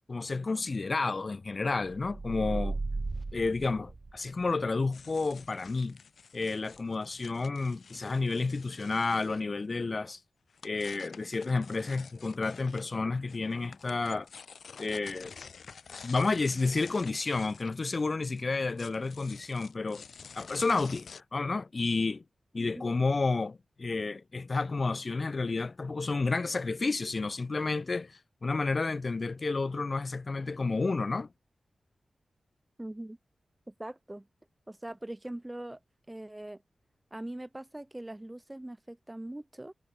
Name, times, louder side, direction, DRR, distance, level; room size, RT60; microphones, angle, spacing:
voice 1, 0.1-2.8 3.3-6.0 6.3-10.2 10.6-14.3 14.8-15.3 16.0-20.0 20.4-22.2 22.5-31.3, left 3 dB, 50° left, 0.9 m, -31 dB
sound 1, 1.9-4.5, right 3 dB, 45° right, 0.4 m, -36 dB
sound 2, 4.9-9.4 10.5-12.8 13.3-21.2, left 6 dB, 75° left, 1.7 m, -50 dB
voice 2, 32.8-33.2 33.7-34.3 34.7-35.8 36.1-36.6 37.1-39.7, right 1 dB, 20° right, 0.9 m, -42 dB
cardioid pair, 45°, 0 cm